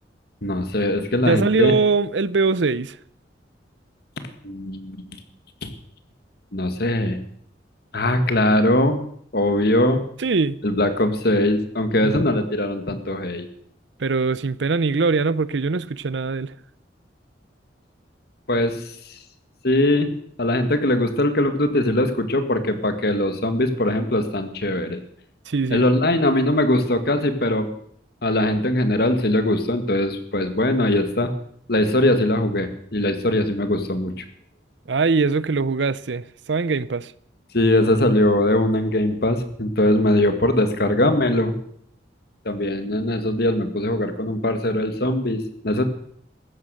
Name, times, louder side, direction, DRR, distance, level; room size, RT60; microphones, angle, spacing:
voice 1, 0.4-1.7 4.4-5.2 5.6-5.7 6.5-7.2 7.9-9.0 9.3-10.0 10.6-13.5 18.5-18.8 19.6-20.1 20.4-25.0 25.7-27.7 28.2-31.3 31.7-34.2 37.5-41.5 42.5-45.8, left 1 dB, 55° left, 1.9 m, -21 dB
voice 2, 1.2-3.0 10.2-10.6 12.0-12.1 14.0-16.5 25.5-25.8 34.9-37.1, right 4 dB, 70° right, 0.6 m, -22 dB
15.5 x 12.0 x 6.5 m
head